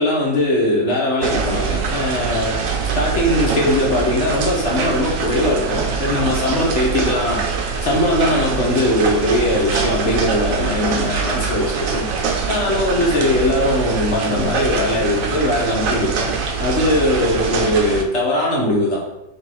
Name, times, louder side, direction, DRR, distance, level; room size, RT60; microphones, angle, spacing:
voice 1, 0.0-2.5 2.9-7.4 7.8-12.0 12.5-16.3 16.6-19.0, left 1 dB, 50° left, -4 dB, 1.0 m, -20 dB
sound 1, 1.2-18.0, right 5 dB, 70° right, 0.8 m, -23 dB
sound 2, 2.3-17.4, right 2 dB, 25° right, 1.5 m, -41 dB
3.5 x 3.4 x 4.2 m, 0.89 s
omnidirectional pair, 1.8 m